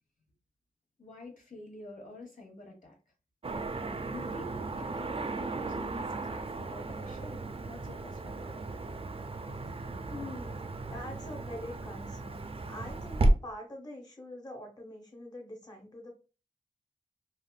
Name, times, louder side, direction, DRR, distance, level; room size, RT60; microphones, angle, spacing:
voice 1, 1.0-3.0 4.1-8.6, left 2 dB, 60° left, 0 dB, 1.0 m, -48 dB
Car passing by / Traffic noise roadway noise, 3.4-13.3, right 2 dB, 40° right, 0.4 m, -34 dB
voice 2, 10.1-16.1, left 1 dB, 25° left, 1 dB, 0.8 m, -44 dB
3.5 x 2.4 x 2.2 m, 0.32 s
wide cardioid pair, 75°, 15 cm